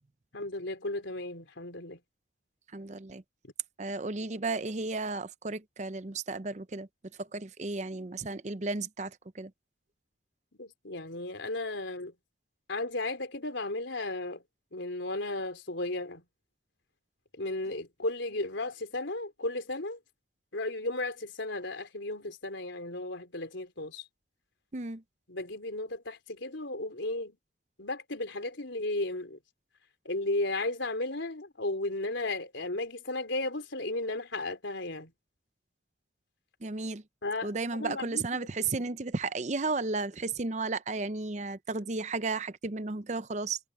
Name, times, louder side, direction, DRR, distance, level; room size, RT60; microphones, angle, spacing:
voice 1, 0.3-2.0 3.4-3.5 10.5-12.1 12.7-14.4 14.7-16.2 17.3-20.0 20.5-24.1 25.3-27.4 27.8-29.4 30.1-35.1 37.2-38.5, left 2 dB, 80° left, 3.7 m, -34 dB
voice 2, 2.7-3.2 3.8-6.9 7.2-9.5 24.7-25.0 36.6-37.0 37.4-43.6, right 3 dB, 40° right, 0.7 m, -34 dB
head